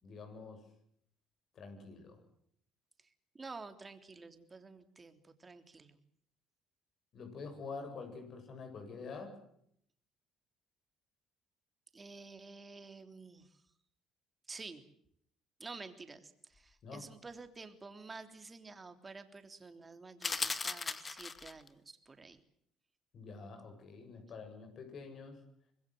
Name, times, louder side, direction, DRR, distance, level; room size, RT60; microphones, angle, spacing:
voice 1, 0.0-0.6 1.5-2.2 7.1-9.3 16.8-17.0 23.1-25.4, left 4 dB, 55° left, 6 dB, 7.9 m, -47 dB
voice 2, 3.3-6.0 11.9-13.5 14.5-14.8 15.6-22.4, right 3 dB, 25° right, 8 dB, 3.4 m, -50 dB
sound 1, 20.2-21.7, left 4 dB, 30° left, 1.9 m, -37 dB
25.5 x 21.0 x 7.9 m, 0.69 s
supercardioid pair, 90°, 0 cm